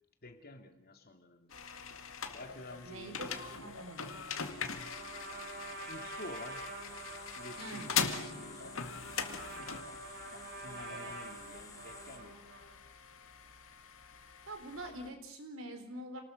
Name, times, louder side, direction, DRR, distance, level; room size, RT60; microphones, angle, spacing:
voice 1, 0.2-1.6 2.3-3.7 5.4-6.6 7.3-8.9 10.1-12.6, left 2 dB, 50° left, 6 dB, 2.5 m, -51 dB
sound 1, 1.5-15.1, left 6 dB, 85° left, 2.0 m, -42 dB
voice 2, 2.8-4.2 7.6-8.4 14.5-16.2, right 1 dB, 75° right, 6 dB, 4.3 m, -45 dB
sound 2, 3.1-12.2, left 4 dB, 15° left, 2.6 m, -55 dB
Trumpet, 4.6-12.8, right 3 dB, 55° right, 7.7 m, -47 dB
28.0 x 19.5 x 6.4 m, 0.74 s
head